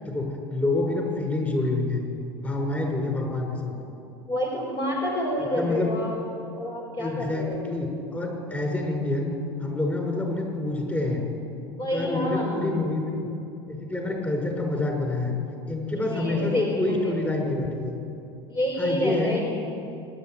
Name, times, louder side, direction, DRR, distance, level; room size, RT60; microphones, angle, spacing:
voice 1, 0.0-2.0 2.4-3.7 5.4-5.9 7.0-9.3 9.6-11.2 11.9-13.3 13.7-15.3 15.7-18.0 18.8-19.4, left 2 dB, 10° left, 1 dB, 6.2 m, -27 dB
voice 2, 4.2-6.2 6.5-7.7 11.8-12.7 15.9-17.4 18.5-19.6, left 1 dB, 30° left, -1 dB, 4.4 m, -29 dB
25.5 x 11.5 x 9.6 m, 2.7 s
hypercardioid pair, 85°, 14 cm